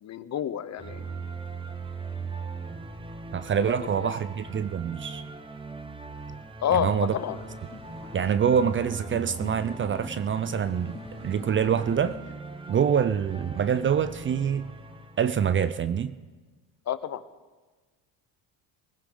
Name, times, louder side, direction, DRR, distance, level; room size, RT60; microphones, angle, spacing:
voice 1, 0.0-1.0 3.7-4.1 6.6-7.4 16.9-17.2, left 10 dB, 40° left, 14 dB, 0.9 m, -29 dB
sound 1, 0.8-15.3, right 4 dB, 10° right, 1.1 m, -40 dB
voice 2, 3.3-5.2 6.7-7.1 8.1-12.2 12.7-14.7 15.2-16.1, right 8 dB, 30° right, 14 dB, 0.5 m, -25 dB
sound 2, 7.1-12.2, left 2 dB, 15° left, 1.9 m, -43 dB
21.0 x 15.0 x 3.9 m, 1.3 s
supercardioid pair, 90°, 41 cm